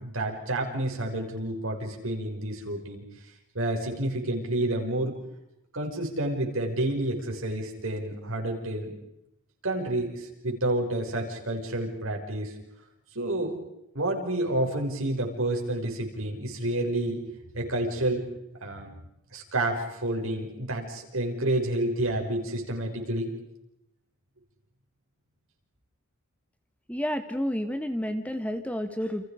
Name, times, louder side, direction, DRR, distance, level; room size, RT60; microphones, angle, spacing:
voice 1, 0.0-3.0 3.5-5.2 5.7-9.0 9.6-12.5 13.1-13.5 13.9-17.2 17.5-18.3 18.6-18.9 19.3-23.3, right 1 dB, 70° right, 1 dB, 6.0 m, -29 dB
voice 2, 26.9-29.3, equal, 5° left, 8 dB, 1.4 m, -30 dB
29.5 x 29.0 x 5.1 m, 0.85 s
head